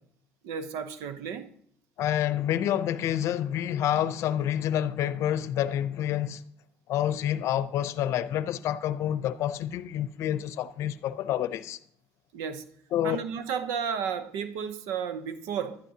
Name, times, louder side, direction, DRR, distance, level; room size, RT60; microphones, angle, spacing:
voice 1, 0.4-1.5 12.3-12.6 13.0-15.8, right 7 dB, 90° right, 0.8 m, -33 dB
voice 2, 2.0-6.4 6.9-11.8 12.9-13.2, left 11 dB, 70° left, 0.6 m, -28 dB
15.0 x 12.0 x 2.8 m
supercardioid pair, 85°, 5 cm